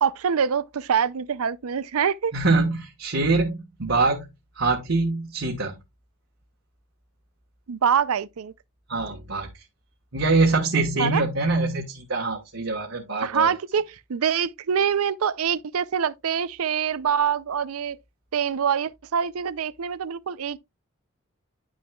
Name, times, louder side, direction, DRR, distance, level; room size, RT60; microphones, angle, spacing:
voice 1, 0.0-2.3 7.7-8.5 11.0-11.2 13.2-18.0 18.3-20.6, right 7 dB, 85° right, 0.5 m, -25 dB
voice 2, 2.3-4.3 4.6-5.7 8.9-9.5 10.1-13.5, right 3 dB, 60° right, 1.4 m, -24 dB
10.5 x 6.1 x 2.3 m
head